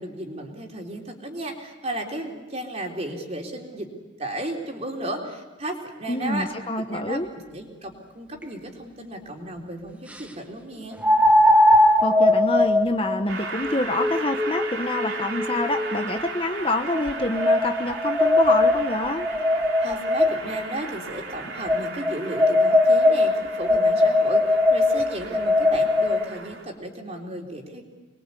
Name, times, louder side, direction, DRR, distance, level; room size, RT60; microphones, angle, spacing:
voice 1, 0.0-3.9 4.2-6.5 6.9-11.0 19.8-27.8, right 1 dB, 30° right, 1 dB, 3.7 m, -34 dB
voice 2, 6.1-7.3 12.0-19.3, left 2 dB, 25° left, 6 dB, 1.1 m, -27 dB
sound 1, 8.4-8.5 11.0-16.2 16.9-20.6 21.6-26.2, left 1 dB, 5° right, 1.1 m, -20 dB
Train, 13.3-26.6, right 4 dB, 80° right, 3.7 m, -36 dB
26.0 x 22.0 x 8.4 m, 1.2 s
head